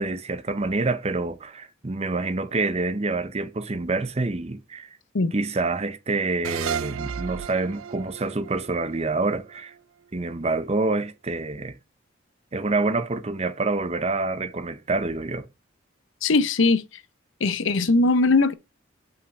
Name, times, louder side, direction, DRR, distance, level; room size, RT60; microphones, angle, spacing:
voice 1, 0.0-5.0 5.3-9.7 10.1-11.8 12.5-15.5, right 3 dB, 30° right, 0.7 m, -27 dB
sound 1, 6.4-9.8, right 8 dB, 90° right, 0.4 m, -33 dB
voice 2, 16.2-16.8 17.4-18.5, left 3 dB, 75° left, 0.8 m, -20 dB
5.7 x 5.5 x 5.4 m
head